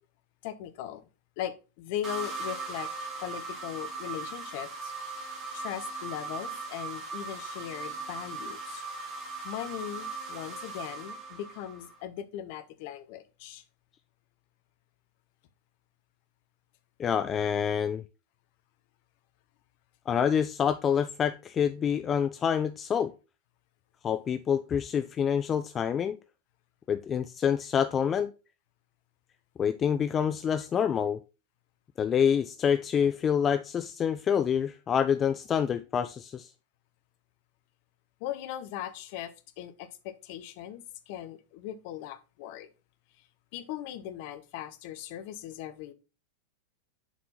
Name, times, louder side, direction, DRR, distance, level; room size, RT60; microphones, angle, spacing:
voice 1, 0.4-1.1 1.4-2.9 3.2-4.9 5.5-8.8 9.4-13.6 38.2-42.7 43.5-45.9, left 11 dB, 50° left, 0.7 m, -39 dB
sound 1, 2.0-12.0, right 3 dB, 25° right, 2.1 m, -39 dB
voice 2, 17.0-18.0 20.1-23.1 24.0-26.2 26.9-28.3 29.6-31.2 32.0-36.5, left 8 dB, 25° left, 0.3 m, -27 dB
7.0 x 4.3 x 4.1 m
figure-of-eight pair, 90°, 0 cm